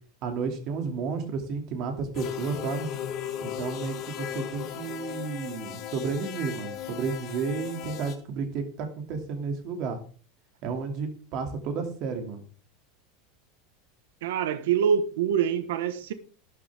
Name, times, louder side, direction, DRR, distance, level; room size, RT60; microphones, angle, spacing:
voice 1, 0.2-2.9 3.4-10.0 10.6-12.4, right 5 dB, 40° right, 2.5 m, -32 dB
sound 1, 2.1-8.2, left 10 dB, 30° left, 1.3 m, -37 dB
voice 2, 14.2-16.1, right 8 dB, 85° right, 1.3 m, -25 dB
12.5 x 11.0 x 3.6 m
supercardioid pair, 170°, 0 cm